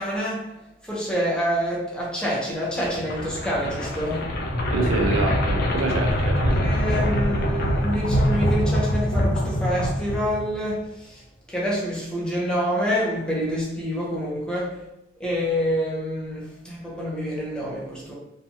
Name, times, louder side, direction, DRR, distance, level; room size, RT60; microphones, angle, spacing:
voice 1, 0.0-4.3 5.6-5.7 6.5-14.9 15.2-18.1, equal, 5° left, 0.6 m, -27 dB
sound 1, 2.7-10.7, equal, 50° left, 0.4 m, -24 dB
voice 2, 4.7-6.6, right 2 dB, 80° right, 0.5 m, -25 dB
2.7 x 2.3 x 2.7 m
head